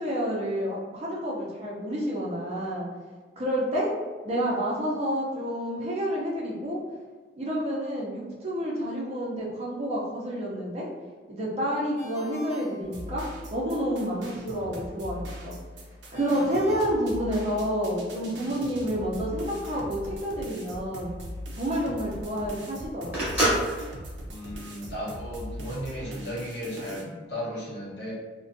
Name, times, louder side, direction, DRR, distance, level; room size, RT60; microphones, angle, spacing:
voice 1, 0.0-2.9 3.4-3.9 4.2-6.8 7.4-10.9 11.3-13.2 13.5-15.6 16.1-21.1 21.5-23.4, equal, 35° right, -4 dB, 0.5 m, -29 dB
Ringtone, 12.0-13.6 16.1-17.8, equal, 40° left, 0.8 m, -44 dB
sound 1, 12.8-27.0, equal, 80° right, 0.5 m, -41 dB
Telephone, 20.2-25.4, right 1 dB, 10° right, 0.8 m, -30 dB
voice 2, 24.3-28.1, equal, 70° left, -5 dB, 0.8 m, -35 dB
2.5 x 2.1 x 2.5 m, 1.4 s
head